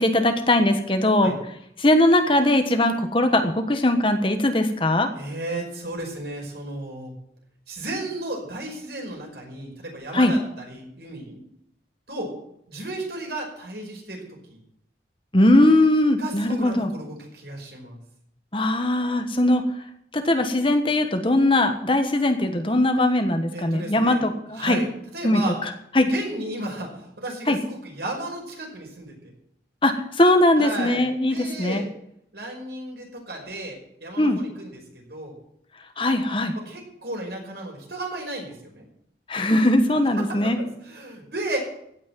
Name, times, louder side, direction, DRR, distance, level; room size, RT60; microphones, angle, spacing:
voice 1, 0.0-1.3 1.8-5.1 10.1-10.3 15.3-16.9 18.5-19.6 20.1-24.3 24.6-24.8 25.2-25.4 25.9-26.1 27.5-27.6 29.8-31.8 34.2-34.4 36.0-36.5 39.3-40.6, left 1 dB, 30° left, 7 dB, 1.2 m, -20 dB
voice 2, 5.1-7.1 7.7-11.4 12.1-12.3 12.7-14.2 14.5-14.6 16.2-18.0 23.5-25.6 26.0-29.3 30.5-31.9 32.3-35.3 36.5-38.8 40.2-41.6, right 1 dB, 70° right, 0 dB, 5.5 m, -34 dB
16.5 x 6.3 x 9.3 m, 0.73 s
head